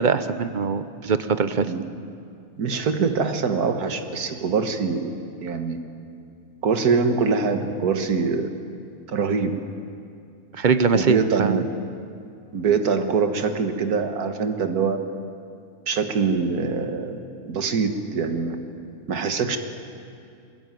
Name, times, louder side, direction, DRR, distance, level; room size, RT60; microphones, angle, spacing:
voice 1, 0.0-1.7 10.5-11.6, right 5 dB, 35° right, 11 dB, 0.9 m, -22 dB
voice 2, 2.6-5.1 5.4-5.8 6.6-8.5 9.1-9.6 10.9-11.7 12.5-15.0 15.9-17.2 17.5-18.6 19.1-19.6, right 5 dB, 80° right, 7 dB, 1.9 m, -23 dB
22.5 x 20.5 x 9.2 m, 2.5 s
omnidirectional pair, 1.6 m